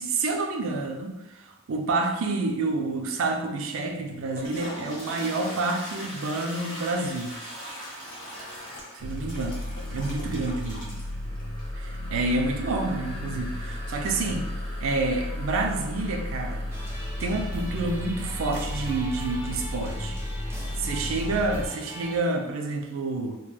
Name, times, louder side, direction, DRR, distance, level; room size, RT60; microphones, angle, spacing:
voice 1, 0.0-7.4 8.9-10.9 11.8-14.5 14.8-16.6 17.2-20.5 20.8-23.4, right 3 dB, 85° right, 3 dB, 0.4 m, -29 dB
Toilet flush, 4.2-20.9, equal, 40° left, 0.9 m, -42 dB
sound 1, 9.0-21.7, left 1 dB, 55° left, 0.4 m, -34 dB
sound 2, 16.7-22.2, equal, 10° right, 0.4 m, -40 dB
2.2 x 2.1 x 3.2 m, 1.0 s
head